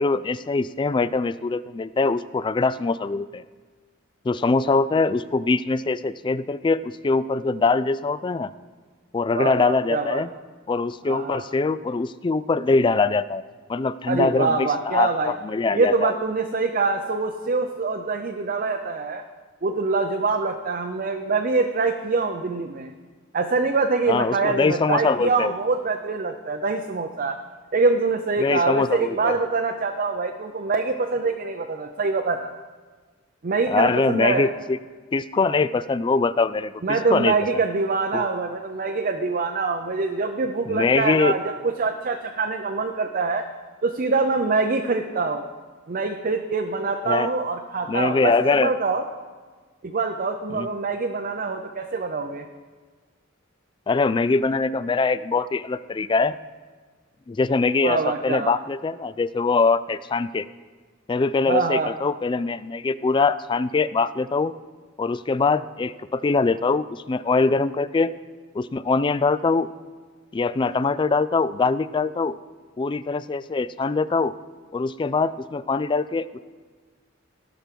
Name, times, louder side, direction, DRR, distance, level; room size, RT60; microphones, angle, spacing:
voice 1, 0.0-3.4 4.3-8.5 9.1-10.3 10.7-13.4 13.7-16.1 24.1-25.5 28.4-29.4 33.7-34.8 35.1-37.4 38.1-38.3 40.7-41.3 47.1-47.3 47.9-48.7 50.5-50.7 53.9-56.4 57.3-60.5 61.1-64.5 65.0-68.1 68.5-69.7 70.3-72.4 72.8-74.3 74.7-76.4, left 4 dB, 25° left, 16 dB, 0.3 m, -23 dB
voice 2, 9.3-10.2 11.1-11.4 14.1-15.3 15.7-19.2 19.6-22.9 23.3-27.4 27.7-32.5 33.4-34.5 36.8-43.5 43.8-45.5 45.9-49.0 49.8-52.4 57.8-58.5 61.5-61.9, right 4 dB, 45° right, 4 dB, 0.6 m, -24 dB
16.5 x 6.0 x 5.2 m, 1.4 s
head